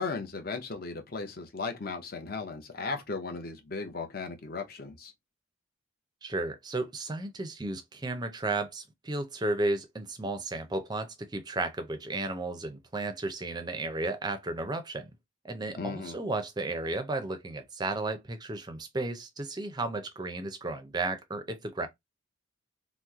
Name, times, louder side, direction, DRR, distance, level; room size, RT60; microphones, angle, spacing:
voice 1, 0.0-5.1 15.8-16.2, left 4 dB, 45° left, 0.7 m, -36 dB
voice 2, 6.2-15.1 15.4-21.9, right 2 dB, 20° right, 0.4 m, -33 dB
2.9 x 2.1 x 3.5 m
head